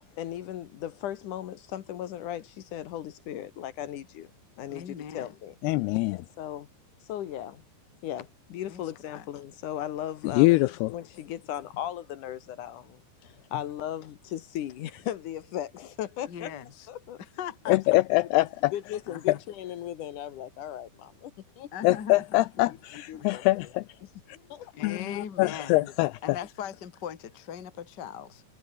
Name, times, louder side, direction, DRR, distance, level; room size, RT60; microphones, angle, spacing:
voice 1, 0.2-4.3 4.6-5.6 6.1-6.7 7.1-7.6 8.0-10.6 10.9-16.5 16.9-17.2 18.4-21.3 21.6-21.7 23.1-23.5 24.5-24.9, left 11 dB, 65° left, 2.2 m, -37 dB
voice 2, 4.7-5.3 8.6-8.8 9.1-9.3 16.3-16.9 17.2-18.0 19.1-19.4 21.7-22.7 23.1-23.3 24.8-25.9 26.2-28.4, left 9 dB, 45° left, 1.4 m, -39 dB
voice 3, 5.6-6.3 10.3-10.9 17.7-18.7 21.8-23.8 24.8-26.1, left 21 dB, 80° left, 2.4 m, -24 dB
omnidirectional pair, 4.9 m